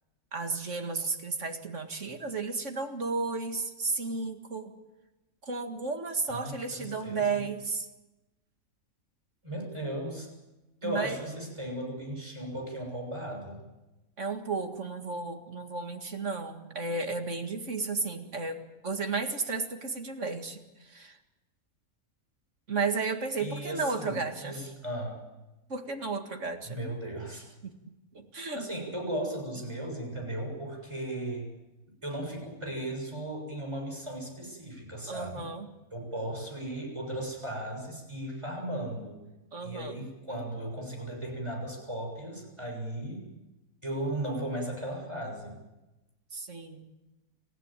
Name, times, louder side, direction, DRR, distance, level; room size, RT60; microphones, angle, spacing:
voice 1, 0.3-4.7 5.4-7.9 10.8-11.2 14.2-21.2 22.7-24.7 25.7-26.8 27.6-27.7 28.1-28.7 35.1-35.7 39.5-40.0 46.3-46.8, right 4 dB, 55° right, 5 dB, 2.3 m, -33 dB
voice 2, 6.3-7.4 9.4-10.3 10.8-13.6 23.4-25.2 26.6-27.5 28.5-31.5 32.0-35.4 35.9-39.2 39.6-43.2 43.8-45.6, right 1 dB, 20° right, 1 dB, 6.8 m, -36 dB
28.0 x 15.0 x 9.0 m, 1.0 s
omnidirectional pair, 1.5 m